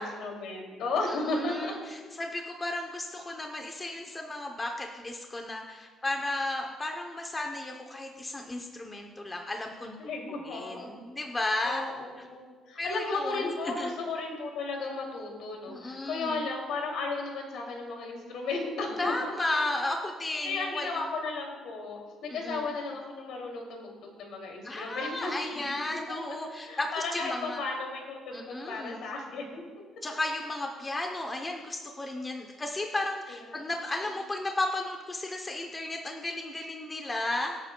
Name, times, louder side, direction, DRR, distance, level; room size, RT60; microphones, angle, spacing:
voice 1, 0.0-1.7 10.0-10.9 11.6-19.6 20.4-26.3 26.6-29.8 33.3-33.7, left 3 dB, 65° left, 1 dB, 2.5 m, -35 dB
voice 2, 1.1-10.0 10.4-11.8 12.8-13.5 13.8-13.9 15.7-16.5 19.0-21.0 22.3-22.7 24.6-27.7 28.3-29.0 30.0-37.6, left 2 dB, 15° left, 2 dB, 0.7 m, -34 dB
24.5 x 8.9 x 2.2 m, 1.5 s
cardioid pair, 175°, 0 cm